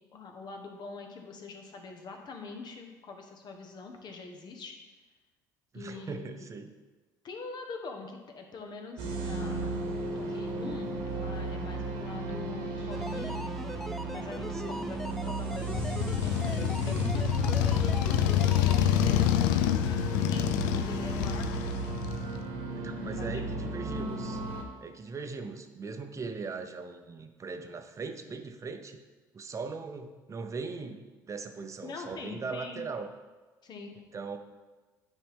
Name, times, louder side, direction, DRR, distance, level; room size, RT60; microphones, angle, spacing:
voice 1, 0.1-4.7 5.7-6.5 7.2-9.7 10.1-13.4 14.1-21.9 23.0-23.7 31.8-32.8 33.6-33.9, left 4 dB, 45° left, 3 dB, 1.2 m, -44 dB
voice 2, 5.7-6.7 14.5-14.9 22.8-24.4 24.8-29.0 29.3-33.1 34.1-34.4, right 4 dB, 30° right, 7 dB, 0.7 m, -39 dB
sound 1, 9.0-24.6, right 3 dB, 65° right, 1.2 m, -35 dB
sound 2, 12.9-18.8, equal, ahead, 0.4 m, -40 dB
Motorcycle, 15.7-22.4, left 11 dB, 75° left, 0.4 m, -27 dB
9.6 x 4.2 x 3.6 m, 1.3 s
hypercardioid pair, 65°, 10 cm